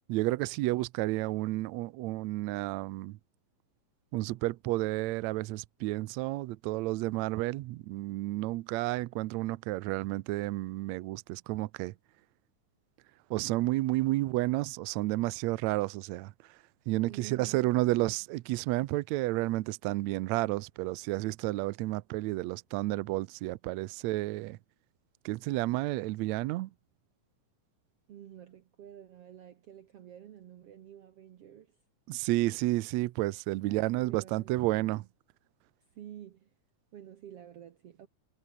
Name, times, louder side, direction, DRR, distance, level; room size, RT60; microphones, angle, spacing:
voice 1, 0.1-3.2 4.1-11.9 13.3-16.6 16.9-24.6 25.2-26.7 32.1-35.0, right 18 dB, 85° right, 1.5 m, -31 dB
voice 2, 17.0-18.2 28.1-31.8 33.7-35.0 35.9-36.5 36.9-38.1, right 10 dB, 65° right, 1.5 m, -50 dB
omnidirectional pair, 4.0 m